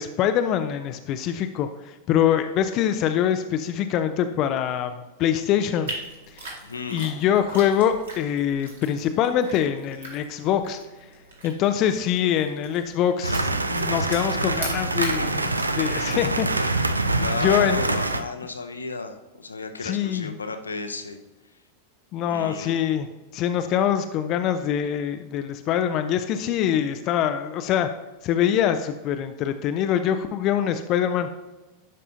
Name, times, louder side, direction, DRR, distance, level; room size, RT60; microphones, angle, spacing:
voice 1, 0.0-5.9 6.3-6.5 6.9-10.8 11.4-16.9 17.2-17.8 19.8-20.3 22.1-23.1 23.3-27.9 28.2-31.3, left 9 dB, 40° left, 9 dB, 0.4 m, -24 dB
sound 1, 5.9-16.7, right 2 dB, 65° right, 2.0 m, -41 dB
voice 2, 6.6-7.1 17.2-21.2 22.2-22.8, left 3 dB, 75° left, 7 dB, 0.7 m, -33 dB
sound 2, 13.2-18.2, right 2 dB, 80° right, 0.4 m, -25 dB
11.5 x 5.4 x 2.7 m, 1.1 s
figure-of-eight pair, 90°, 0 cm